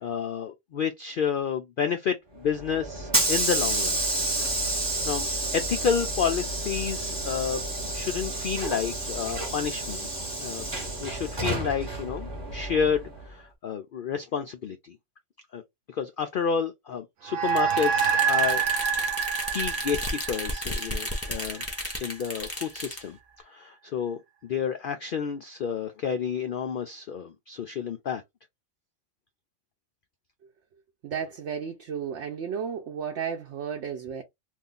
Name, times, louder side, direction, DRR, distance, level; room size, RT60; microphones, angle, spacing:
voice 1, 0.0-4.0 5.0-5.3 5.5-7.6 7.9-10.1 10.4-10.7 11.0-15.0 15.5-15.6 15.9-18.6 19.5-21.6 22.0-23.2 23.5-28.2, left 7 dB, 75° left, 0.4 m, -30 dB
Hiss / Sliding door, 2.4-13.3, right 2 dB, 20° right, 1.0 m, -30 dB
sound 1, 17.3-21.9, right 7 dB, 80° right, 1.1 m, -27 dB
sound 2, 17.5-23.0, left 1 dB, 10° left, 0.8 m, -34 dB
voice 2, 31.0-34.2, right 7 dB, 65° right, 0.9 m, -33 dB
2.6 x 2.4 x 3.7 m
omnidirectional pair, 1.4 m